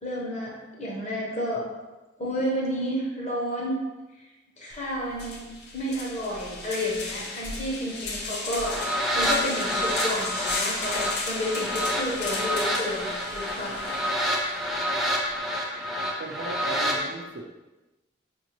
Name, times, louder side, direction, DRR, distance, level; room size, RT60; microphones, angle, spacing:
voice 1, 0.0-1.6 2.2-3.8 4.2-4.3 4.6-5.5 5.7-13.9 14.6-14.7 16.0-16.1, equal, 35° left, -4 dB, 0.9 m, -31 dB
sound 1, 4.7-4.8 5.1-14.7, left 3 dB, 55° left, 0.5 m, -35 dB
sound 2, 8.5-17.0, equal, ahead, 0.4 m, -28 dB
voice 2, 16.2-17.5, right 3 dB, 65° right, 4 dB, 0.4 m, -37 dB
4.4 x 2.6 x 3.0 m, 1.1 s
head